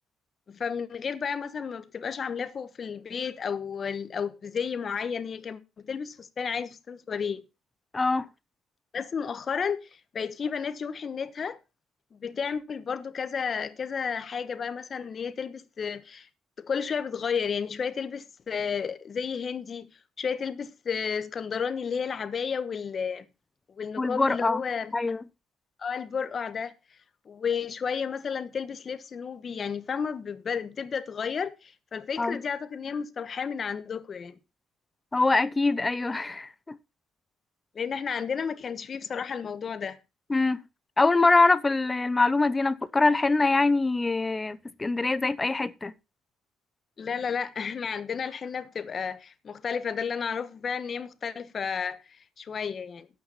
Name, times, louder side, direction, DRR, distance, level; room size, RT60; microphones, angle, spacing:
voice 1, 0.5-7.4 8.9-11.6 12.1-16.3 16.6-19.9 20.2-23.2 23.8-24.9 25.8-26.7 27.2-34.4 37.7-40.0 47.0-53.1, left 6 dB, 40° left, 1.2 m, -32 dB
voice 2, 7.9-8.3 24.0-24.6 24.9-25.2 32.2-32.4 35.1-36.8 40.3-40.6 41.0-45.9, left 3 dB, 20° left, 0.7 m, -24 dB
11.5 x 8.9 x 4.1 m
cardioid pair, 110°, 0 cm